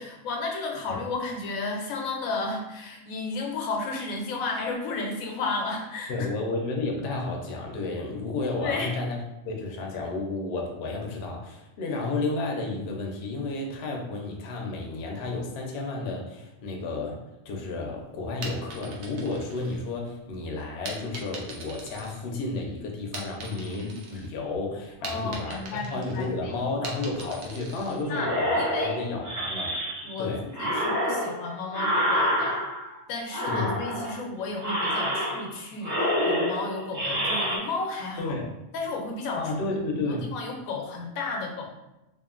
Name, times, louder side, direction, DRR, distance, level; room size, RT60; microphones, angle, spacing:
voice 1, 0.0-6.1 8.6-9.0 25.0-26.5 27.3-27.4 28.1-29.0 30.0-32.6 33.1-38.4 38.7-39.8 40.1-41.7, left 3 dB, 85° left, 1 dB, 1.0 m, -33 dB
voice 2, 6.1-9.2 9.4-17.2 17.5-29.8 30.2-30.4 33.5-33.7 38.2-38.5 39.4-40.3, left 3 dB, 65° left, 0 dB, 0.7 m, -32 dB
sound 1, 18.3-20.2 20.9-22.6 23.0-24.3 24.6-28.0, right 3 dB, 80° right, 1.0 m, -41 dB
sound 2, 28.1-30.2 30.5-32.9 33.3-34.2 34.6-35.6 35.8-37.6, equal, 20° right, 0.7 m, -27 dB
2.7 x 2.4 x 2.4 m, 0.95 s
omnidirectional pair, 1.4 m